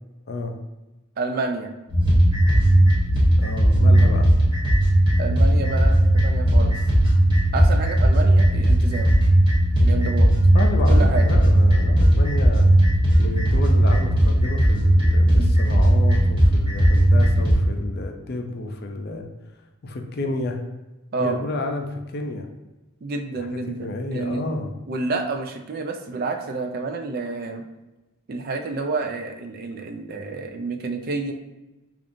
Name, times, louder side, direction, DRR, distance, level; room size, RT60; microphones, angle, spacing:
voice 1, 0.3-0.6 3.4-4.3 10.5-12.7 13.2-19.3 19.8-20.6 21.2-22.5 23.4-24.7, left 2 dB, 45° left, 4 dB, 0.4 m, -30 dB
voice 2, 1.2-1.7 5.2-6.8 7.5-9.1 9.8-10.3 10.9-11.4 15.3-15.5 21.1-21.4 23.0-24.4 24.9-27.7 28.3-31.3, right 3 dB, 45° right, 6 dB, 0.3 m, -29 dB
sound 1, 1.9-17.5, right 1 dB, 20° right, 0.9 m, -17 dB
5.1 x 2.4 x 2.5 m, 1.0 s
head